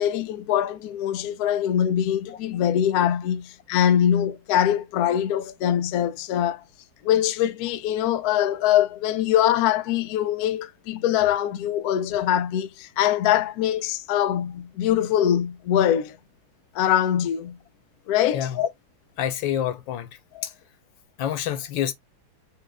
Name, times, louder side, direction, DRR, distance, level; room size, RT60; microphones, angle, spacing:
voice 1, 0.0-6.6 7.0-16.2 16.7-17.6 18.1-18.5 20.3-20.5, left 10 dB, 90° left, 0.8 m, -23 dB
voice 2, 18.3-18.7 19.2-20.1 20.4-20.5 21.2-21.9, left 10 dB, 70° left, 1.5 m, -27 dB
6.5 x 2.3 x 3.3 m
omnidirectional pair, 2.2 m